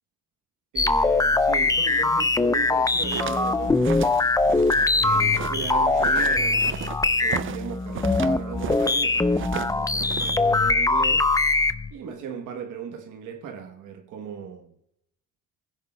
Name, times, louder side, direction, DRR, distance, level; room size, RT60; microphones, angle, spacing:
voice 1, 0.7-4.3 5.0-6.9 7.2-11.3 11.9-14.8, right 7 dB, 85° right, 1.1 m, -37 dB
sound 1, 0.8-11.9, left 3 dB, 10° left, 0.5 m, -22 dB
sound 2, 2.8-9.0 9.3-10.5, right 10 dB, 45° right, 0.4 m, -36 dB
sound 3, 4.4-8.9, left 3 dB, 45° left, 3.8 m, -47 dB
22.5 x 15.5 x 2.2 m
cardioid pair, 90°, 30 cm